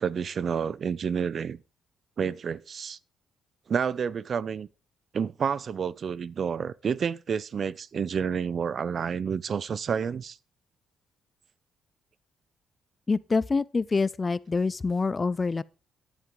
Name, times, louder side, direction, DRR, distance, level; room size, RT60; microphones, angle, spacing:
voice 1, 0.0-1.6 2.2-3.0 3.7-4.7 5.1-10.4, right 7 dB, 50° right, 0.4 m, -29 dB
voice 2, 13.1-15.6, left 4 dB, 30° left, 0.5 m, -26 dB
10.5 x 10.5 x 3.8 m
cardioid pair, 90°, 0 cm